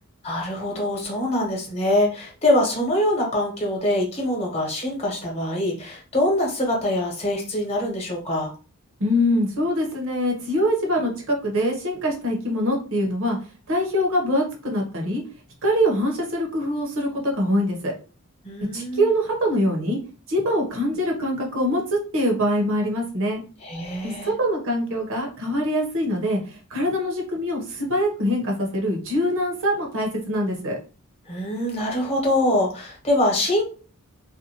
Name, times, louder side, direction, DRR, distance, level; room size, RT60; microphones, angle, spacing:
voice 1, 0.2-8.5 18.4-19.1 23.6-24.3 31.3-33.6, left 1 dB, 30° left, -2 dB, 0.9 m, -24 dB
voice 2, 9.0-13.4 13.7-15.2 15.6-17.9 18.7-20.0 20.3-23.4 24.0-26.4 26.7-30.8, equal, 65° right, 0 dB, 0.9 m, -23 dB
2.5 x 2.2 x 2.8 m, 0.36 s
head